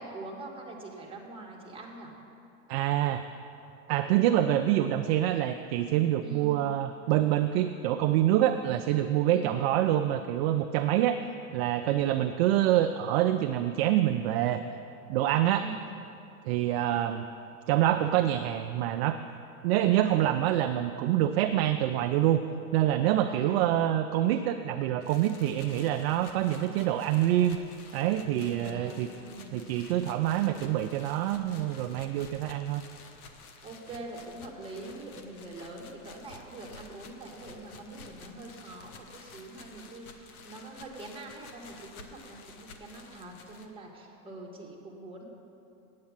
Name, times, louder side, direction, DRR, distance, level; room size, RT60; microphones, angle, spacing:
voice 1, 0.0-2.1 6.2-6.6 9.3-9.7 15.5-16.0 23.3-23.7 28.4-29.6 33.6-45.2, right 2 dB, 10° right, -2 dB, 1.7 m, -44 dB
voice 2, 2.7-3.2 3.9-11.2 11.5-14.6 15.1-15.7 16.4-17.3 17.7-19.2 19.6-22.4 22.7-27.6 27.9-29.1 29.5-32.8, right 12 dB, 45° right, 7 dB, 0.5 m, -26 dB
sound 1, 25.0-43.7, left 4 dB, 80° left, 1.2 m, -51 dB
8.7 x 8.6 x 7.4 m, 2.7 s
hypercardioid pair, 125°, 43 cm